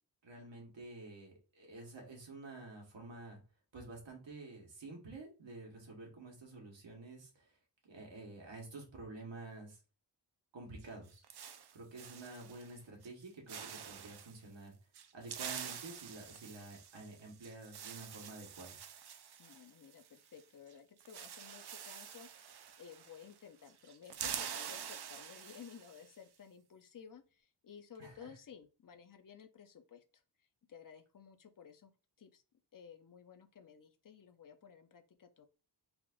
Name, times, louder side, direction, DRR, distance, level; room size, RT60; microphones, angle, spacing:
voice 1, 0.2-3.4 3.7-7.6 7.8-9.8 10.5-11.2 11.7-14.8 15.1-18.8 28.0-28.3, right 2 dB, 85° right, 0 dB, 1.4 m, -50 dB
sound 1, 10.8-12.8 13.0-13.2 13.5-14.4 14.9-20.4 20.7-20.8 21.0-23.4 23.7-26.1, right 8 dB, 65° right, 0.5 m, -47 dB
voice 2, 19.4-31.9 32.2-32.4 32.7-35.5, left 7 dB, 50° left, 7 dB, 0.5 m, -55 dB
3.5 x 2.5 x 3.6 m, 0.34 s
wide cardioid pair, 90°, 43 cm